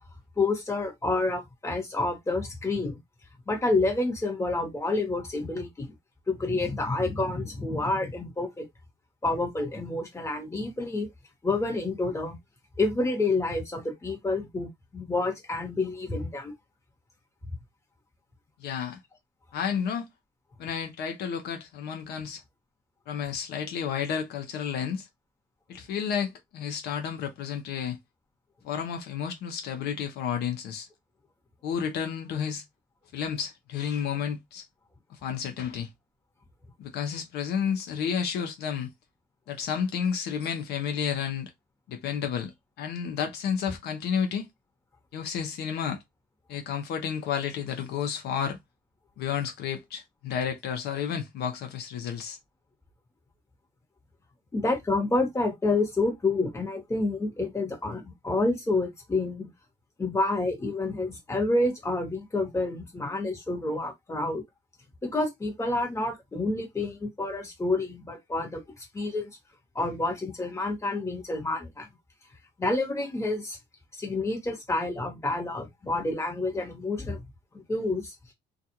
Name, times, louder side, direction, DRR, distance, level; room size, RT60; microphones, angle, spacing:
voice 1, 0.4-3.0 3.5-5.9 6.3-8.6 9.2-11.1 11.4-12.4 12.8-16.5 54.5-59.5 60.0-64.4 65.0-69.3 69.7-71.9 72.6-73.6 74.0-77.2 77.5-78.1, left 2 dB, 15° left, 1.2 m, -28 dB
voice 2, 18.6-19.0 19.5-20.1 20.6-22.4 23.1-25.1 25.7-28.0 28.6-30.9 31.6-32.6 33.1-34.6 35.2-35.9 36.8-38.9 39.5-41.5 41.9-42.5 42.8-44.5 45.1-46.0 46.5-48.6 49.2-52.4, left 7 dB, 75° left, 0.7 m, -31 dB
2.5 x 2.3 x 2.8 m
cardioid pair, 110°, 17 cm